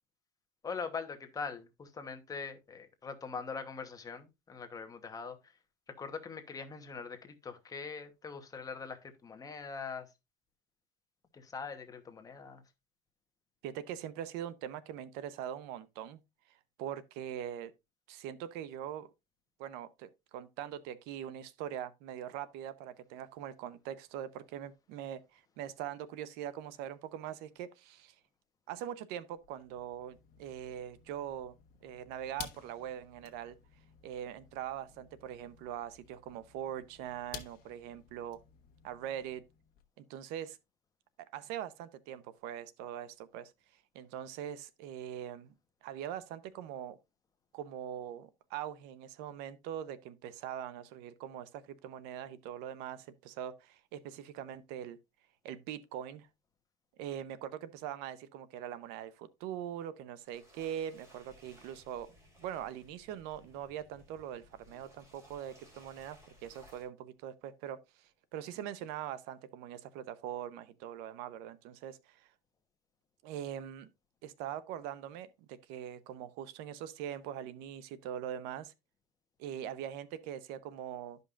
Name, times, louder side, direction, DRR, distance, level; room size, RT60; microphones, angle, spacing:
voice 1, 0.6-5.4 5.9-10.1 11.3-12.6, left 5 dB, 20° left, 1.0 m, -42 dB
voice 2, 13.6-16.2 16.8-17.7 18.1-19.1 19.6-28.1 28.7-31.5 31.8-33.6 34.0-38.4 38.8-39.4 40.0-40.6 41.3-43.5 43.9-45.5 45.8-47.0 47.5-55.0 55.4-56.3 57.0-62.1 62.4-72.3 73.2-73.9 74.2-78.7 79.4-81.2, right 10 dB, 80° right, 0.7 m, -42 dB
sound 1, 29.4-39.9, left 10 dB, 60° left, 1.1 m, -53 dB
sound 2, 60.2-66.9, left 1 dB, 20° right, 3.3 m, -60 dB
12.5 x 5.3 x 2.5 m
cardioid pair, 140°, 16 cm